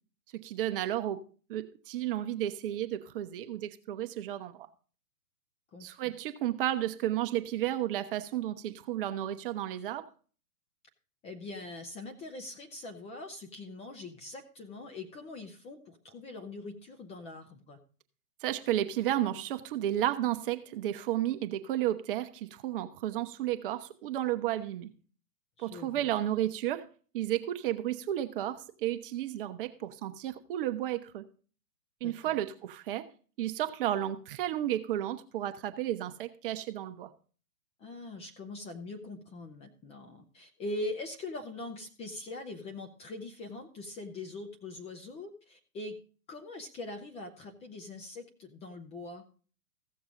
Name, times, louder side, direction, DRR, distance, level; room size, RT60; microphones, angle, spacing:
voice 1, 0.3-1.2 1.5-4.7 5.8-10.1 18.4-24.9 25.6-26.8 27.1-31.3 32.0-33.0 33.4-37.1, right 12 dB, 35° right, 9 dB, 0.8 m, -32 dB
voice 2, 5.7-6.1 11.2-17.8 25.6-26.1 32.0-32.4 37.8-46.0 46.3-49.2, left 2 dB, 15° left, 5 dB, 0.7 m, -42 dB
15.0 x 6.9 x 3.8 m, 0.40 s
hypercardioid pair, 130°, 46 cm